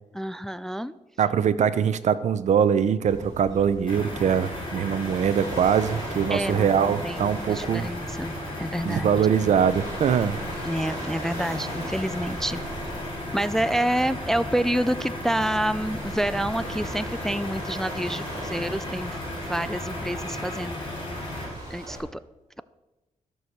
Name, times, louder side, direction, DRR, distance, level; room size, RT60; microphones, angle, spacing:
voice 1, 0.1-0.9 6.3-8.3 8.6-9.1 10.6-12.6 13.3-19.2 19.4-20.8 21.7-22.0, right 1 dB, 5° left, 14 dB, 0.3 m, -28 dB
voice 2, 1.2-7.9 8.8-10.4, right 8 dB, 65° right, 14 dB, 0.7 m, -22 dB
Waves surf, 3.0-22.0, right 2 dB, 30° right, 5.2 m, -39 dB
sound 1, 3.9-21.5, left 2 dB, 40° left, 4.3 m, -35 dB
14.5 x 6.3 x 6.6 m, 1.1 s
wide cardioid pair, 125°, 13 cm